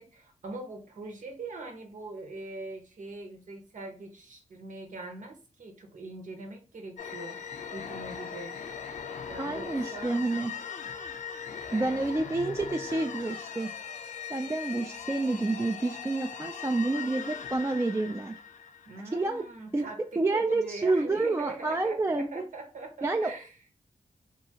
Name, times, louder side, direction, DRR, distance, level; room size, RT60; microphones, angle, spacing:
voice 1, 0.0-7.4 7.7-8.6 9.2-10.5 11.7-12.0 18.9-23.6, right 2 dB, 75° right, 3 dB, 0.9 m, -42 dB
sound 1, 7.0-19.5, left 7 dB, 70° left, 0.5 m, -40 dB
voice 2, 9.4-10.5 11.7-13.7 14.3-18.4 19.1-19.5 19.7-19.9 20.2-22.4 23.0-23.3, right 2 dB, 20° right, 4 dB, 0.3 m, -29 dB
2.7 x 2.4 x 2.8 m, 0.36 s
cardioid pair, 65°, 13 cm